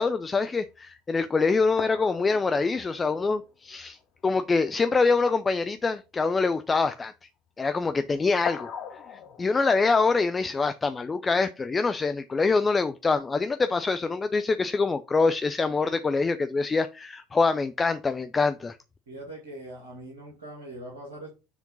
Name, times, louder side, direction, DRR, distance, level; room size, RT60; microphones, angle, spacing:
voice 1, 0.0-4.0 4.2-7.1 7.6-8.7 9.1-18.8, left 4 dB, 25° left, 0.6 m, -25 dB
sound 1, 0.6-0.7 1.3-1.4 1.7-4.0 4.3-4.4 4.8-5.0 8.4-9.5, left 7 dB, 50° left, 0.9 m, -40 dB
voice 2, 19.1-21.3, right 1 dB, 80° right, 2.1 m, -41 dB
7.2 x 3.7 x 5.5 m
figure-of-eight pair, 60°, 0 cm